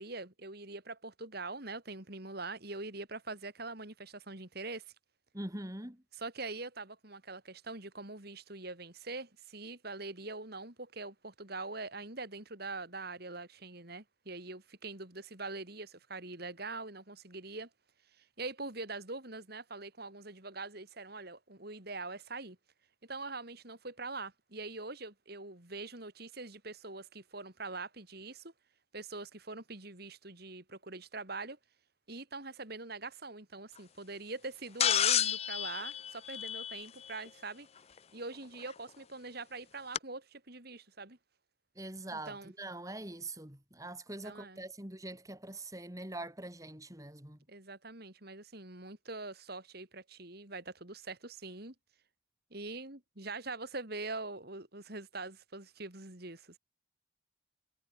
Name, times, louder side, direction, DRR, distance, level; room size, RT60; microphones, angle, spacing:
voice 1, 0.0-4.9 6.1-17.7 18.2-22.6 23.0-28.5 28.9-31.6 32.1-37.7 38.1-41.2 42.1-42.5 44.2-44.6 47.5-51.7 52.5-56.6, right 3 dB, 50° right, 3.6 m, -43 dB
voice 2, 5.3-6.0 41.8-47.4, right 2 dB, 15° right, 3.4 m, -43 dB
sound 1, 34.8-37.1 38.7-38.8 39.9-40.0, left 10 dB, 30° left, 0.5 m, -30 dB
head